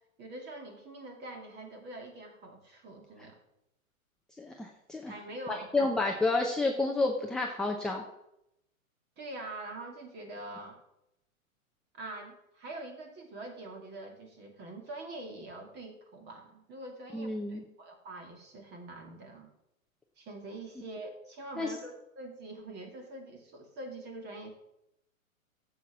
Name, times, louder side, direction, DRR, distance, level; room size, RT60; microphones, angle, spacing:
voice 1, 0.2-3.4 5.1-5.9 9.2-10.8 11.9-19.5 20.2-24.5, right 2 dB, 25° right, 4 dB, 2.6 m, -44 dB
voice 2, 4.4-5.1 5.5-8.0 17.1-17.6 21.6-21.7, left 3 dB, ahead, 0 dB, 0.6 m, -30 dB
12.5 x 7.8 x 6.2 m, 0.83 s
hypercardioid pair, 135°, 41 cm